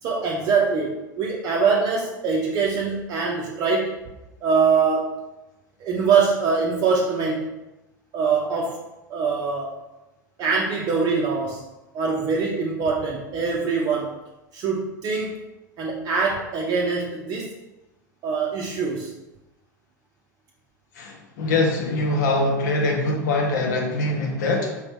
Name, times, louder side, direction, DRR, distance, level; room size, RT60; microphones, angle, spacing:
voice 1, 0.0-4.0 4.4-5.2 5.8-7.5 8.1-9.8 10.4-11.6 11.9-14.2 14.5-15.4 15.8-17.5 18.2-19.1, right 5 dB, 40° right, -2 dB, 0.6 m, -23 dB
voice 2, 21.0-24.8, left 2 dB, 65° left, 1 dB, 1.0 m, -23 dB
4.7 x 3.0 x 3.4 m, 0.97 s
figure-of-eight pair, 85°, 10 cm